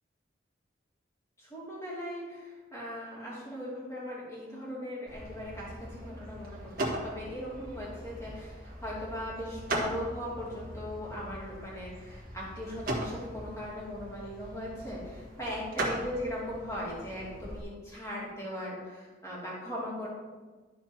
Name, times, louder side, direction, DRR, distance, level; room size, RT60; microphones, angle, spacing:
voice 1, 1.4-20.1, left 1 dB, 15° left, -7 dB, 2.6 m, -39 dB
sound 1, 5.1-17.6, right 1 dB, 50° right, 1.7 m, -39 dB
12.0 x 4.4 x 4.4 m, 1.3 s
head